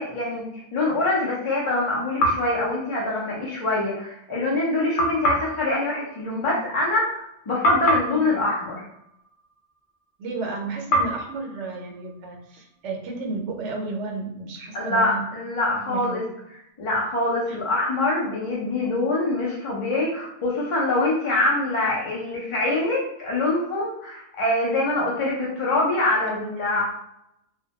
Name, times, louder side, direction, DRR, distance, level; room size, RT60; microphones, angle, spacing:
voice 1, 0.0-8.9 14.7-16.2 16.8-26.8, left 2 dB, 50° left, -5 dB, 0.3 m, -24 dB
sound 1, 2.2-3.6 5.0-7.3 7.6-9.9 10.9-12.8, equal, 80° left, 0.9 m, -28 dB
voice 2, 10.2-15.2 15.7-16.3 17.5-17.6 26.3-26.8, right 3 dB, 85° right, 2 dB, 0.9 m, -33 dB
2.2 x 2.1 x 2.7 m, 0.78 s
omnidirectional pair, 1.2 m